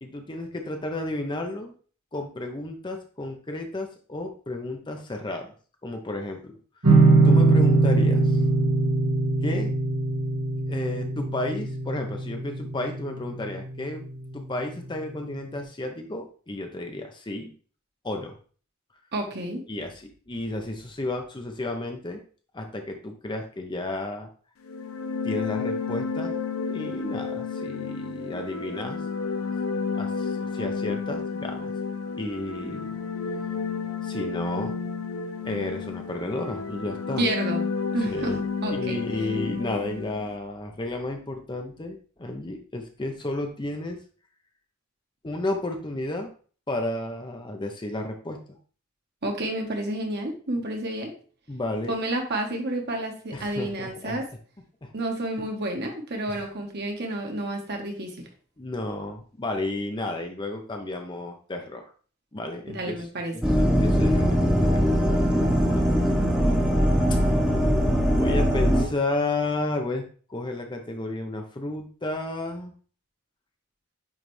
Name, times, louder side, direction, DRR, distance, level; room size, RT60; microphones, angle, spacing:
voice 1, 0.0-1.7 2.1-5.5 5.8-6.6 7.2-8.4 9.4-9.7 10.7-14.0 14.3-17.5 18.0-18.4 19.7-22.2 22.5-24.3 25.2-26.3 26.7-29.0 29.9-31.7 32.2-33.0 34.0-34.8 35.4-37.3 38.1-38.4 38.7-44.0 45.2-46.3 46.7-48.4 51.5-52.0 53.3-54.2 54.8-54.9 56.3-56.5 58.6-61.8 62.3-63.0 63.3-66.5 67.1-67.2 68.1-70.0 70.3-72.7, left 2 dB, 20° left, 4 dB, 0.6 m, -32 dB
sound 1, 6.8-14.0, right 3 dB, 75° right, 1.9 m, -22 dB
voice 2, 19.1-19.6 37.2-37.6 37.9-39.0 49.2-51.1 51.9-54.2 54.9-58.2 62.7-63.3, right 1 dB, 50° right, 2 dB, 1.3 m, -30 dB
sound 2, 24.6-40.4, left 5 dB, 70° left, 0.6 m, -31 dB
sound 3, 63.4-68.9, equal, 5° right, 0.9 m, -21 dB
9.0 x 3.3 x 3.2 m, 0.41 s
head